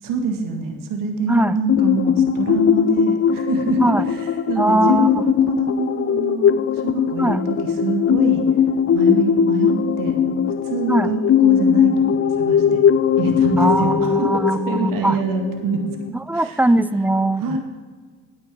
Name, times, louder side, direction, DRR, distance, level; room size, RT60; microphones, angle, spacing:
voice 1, 0.0-8.4 8.9-12.8 13.2-15.8 16.3-16.6 17.4-17.6, right 3 dB, 70° right, 4 dB, 1.7 m, -26 dB
sound 1, 1.7-16.1, left 8 dB, 40° left, 0.6 m, -19 dB
voice 2, 4.6-5.2 7.2-7.4 10.9-11.1 13.6-15.2 16.3-17.6, right 1 dB, 5° right, 15 dB, 0.4 m, -20 dB
9.2 x 8.5 x 4.8 m, 1.5 s
hypercardioid pair, 50°, 34 cm